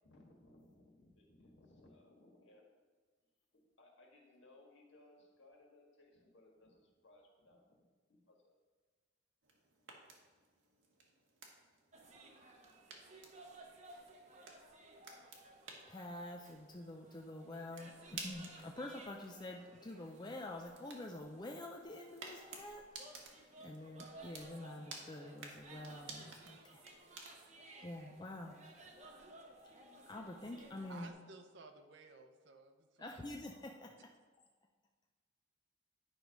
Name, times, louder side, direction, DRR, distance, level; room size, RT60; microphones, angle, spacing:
voice 1, 0.0-2.7 3.5-8.6, left 2 dB, 70° left, 0 dB, 1.7 m, -64 dB
sound 1, 9.4-27.5, right 4 dB, 90° right, 1.4 m, -55 dB
sound 2, 11.9-31.1, right 2 dB, 40° right, 0.9 m, -58 dB
voice 2, 15.9-22.9 23.3-26.9 27.8-28.6 29.7-31.1 33.0-34.0, left 1 dB, 20° left, 1 dB, 0.5 m, -47 dB
voice 3, 30.9-33.5 34.0-34.1, right 3 dB, 65° right, 6 dB, 0.8 m, -57 dB
9.9 x 4.6 x 5.2 m, 1.4 s
head